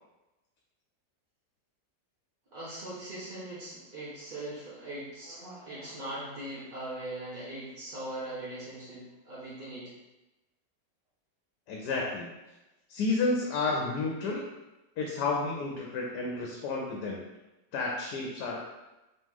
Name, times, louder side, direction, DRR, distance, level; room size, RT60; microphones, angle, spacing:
voice 1, 2.5-9.9, right 1 dB, 35° right, -10 dB, 0.9 m, -40 dB
voice 2, 11.7-12.3 12.9-14.5 15.0-17.2 17.7-18.7, left 3 dB, 75° left, 0 dB, 1.2 m, -31 dB
3.5 x 3.1 x 3.6 m, 1.0 s
omnidirectional pair, 1.8 m